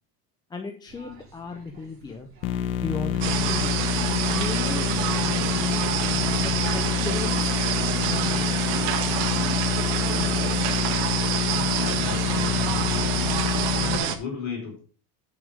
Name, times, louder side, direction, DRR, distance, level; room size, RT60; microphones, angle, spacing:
voice 1, 0.5-2.3 2.8-4.0 4.3-5.9 6.4-7.5 8.0-9.7 10.1-10.9, left 4 dB, 10° left, 5 dB, 0.5 m, -37 dB
sound 1, 0.9-13.5, right 3 dB, 30° right, 3.6 m, -46 dB
sound 2, 2.4-14.0, left 9 dB, 80° left, 1.5 m, -27 dB
sound 3, 3.2-14.2, right 9 dB, 75° right, 1.6 m, -27 dB
voice 2, 11.7-13.4 13.8-14.8, left 4 dB, 40° left, -1 dB, 4.7 m, -35 dB
9.3 x 6.3 x 5.0 m, 0.40 s
cardioid pair, 165°, 43 cm